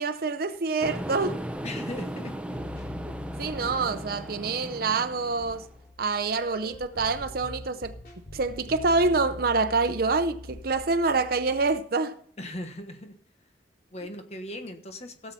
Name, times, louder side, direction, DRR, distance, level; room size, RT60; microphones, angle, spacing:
voice 1, 0.0-1.4 3.4-5.6 6.0-7.9 8.3-12.2, right 3 dB, 55° right, 0.7 m, -26 dB
sound 1, 0.8-5.8, right 1 dB, 5° right, 0.8 m, -36 dB
voice 2, 1.6-2.6 12.4-13.1 13.9-15.3, left 1 dB, 40° left, 1.3 m, -38 dB
sound 2, 2.5-11.7, left 1 dB, 55° left, 3.9 m, -44 dB
17.5 x 7.6 x 4.2 m
head